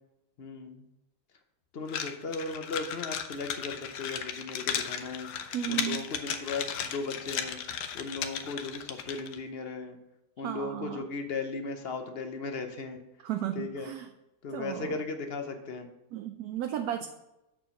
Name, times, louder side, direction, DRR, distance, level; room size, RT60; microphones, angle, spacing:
voice 1, 0.4-0.8 1.7-5.3 5.7-7.6 7.9-10.0 10.4-13.0 13.5-13.9 14.4-15.9, left 3 dB, 50° left, 6 dB, 0.8 m, -37 dB
sound 1, 1.9-9.4, left 8 dB, 80° left, 1.3 m, -35 dB
voice 2, 5.5-6.0 10.4-11.0 13.2-14.1 14.5-15.0 16.1-17.1, right 11 dB, 70° right, 6 dB, 1.0 m, -34 dB
7.6 x 4.6 x 5.5 m, 0.93 s
omnidirectional pair, 1.8 m